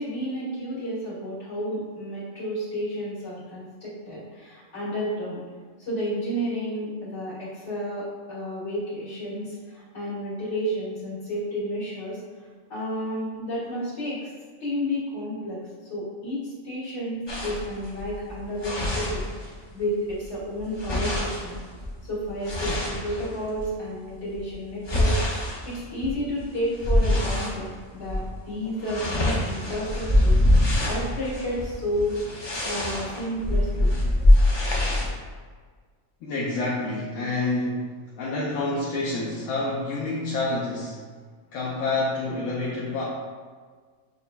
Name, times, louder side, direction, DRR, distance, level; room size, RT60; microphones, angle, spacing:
voice 1, 0.0-5.4 5.8-12.2 12.7-14.3 14.6-15.6 15.9-21.6 22.0-32.3 32.6-34.0, equal, 60° left, -8 dB, 2.0 m, -31 dB
sound 1, 17.3-19.8 20.1-23.7 24.3-27.6 28.0-28.3 28.6-35.1, left 1 dB, 45° left, 0.3 m, -24 dB
voice 2, 36.2-41.1 41.5-43.0, left 2 dB, 80° left, -4 dB, 1.0 m, -28 dB
6.6 x 2.7 x 2.2 m, 1.6 s
omnidirectional pair, 1.4 m